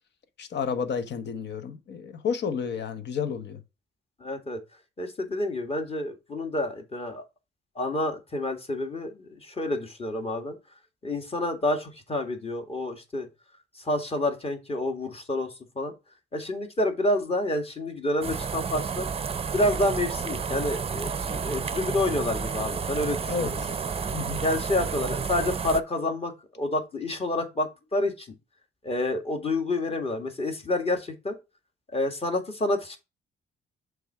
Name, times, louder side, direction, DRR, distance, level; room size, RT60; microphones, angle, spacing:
voice 1, 0.4-3.6 23.3-23.7 24.1-24.4, left 6 dB, 60° left, 1.0 m, -31 dB
voice 2, 4.2-4.6 5.0-7.2 7.8-10.6 11.0-13.3 13.8-15.9 16.3-19.1 19.5-23.6 24.4-28.3 28.8-31.4 31.9-33.0, left 1 dB, 30° left, 1.8 m, -28 dB
sound 1, 18.2-25.8, right 6 dB, 30° right, 0.6 m, -31 dB
6.9 x 3.6 x 5.5 m
cardioid pair, 90°, 20 cm